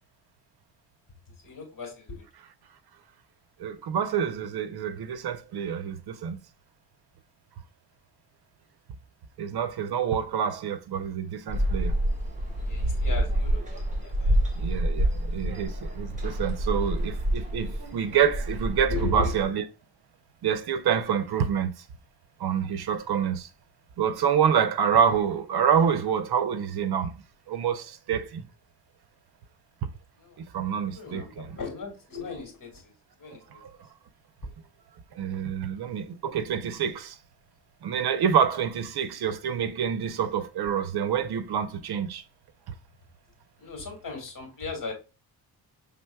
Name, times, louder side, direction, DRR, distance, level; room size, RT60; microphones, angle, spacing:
voice 1, 1.4-2.2 12.6-14.4 15.0-15.3 18.9-19.4 30.2-30.4 30.9-32.9 33.2-33.4 43.6-44.9, left 3 dB, 55° left, 2.2 m, -36 dB
voice 2, 3.6-6.4 9.4-11.9 14.5-19.6 20.4-21.8 22.4-23.5 24.0-27.1 27.5-28.4 30.4-31.5 33.5-33.7 35.2-37.2 37.8-42.2 42.7-42.8, right 7 dB, 75° right, 0.7 m, -27 dB
sound 1, 11.5-19.4, right 1 dB, 20° right, 1.6 m, -28 dB
6.0 x 3.4 x 2.3 m
wide cardioid pair, 125°, 39 cm